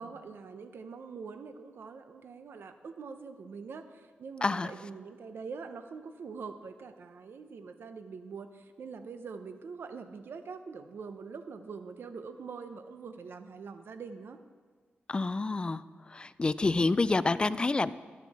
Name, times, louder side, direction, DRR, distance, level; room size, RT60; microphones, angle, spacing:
voice 1, 0.0-14.4, right 5 dB, 70° right, 9 dB, 0.7 m, -44 dB
voice 2, 4.4-4.7 15.1-17.9, left 3 dB, 25° left, 15 dB, 0.3 m, -28 dB
12.5 x 11.0 x 4.2 m, 1.5 s
wide cardioid pair, 135°, 4 cm